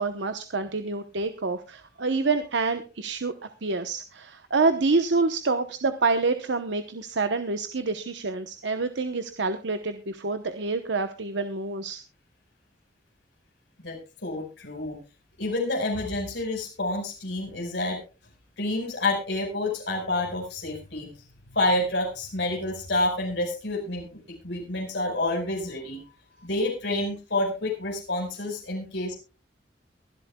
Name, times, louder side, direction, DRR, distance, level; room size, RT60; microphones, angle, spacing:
voice 1, 0.0-3.3 3.6-12.0, right 3 dB, 80° right, 8 dB, 1.0 m, -27 dB
voice 2, 13.8-15.0 15.4-18.0 18.6-21.1 21.5-26.0 26.4-29.1, left 2 dB, 75° left, 0 dB, 4.8 m, -28 dB
23.0 x 11.5 x 2.3 m, 0.31 s
head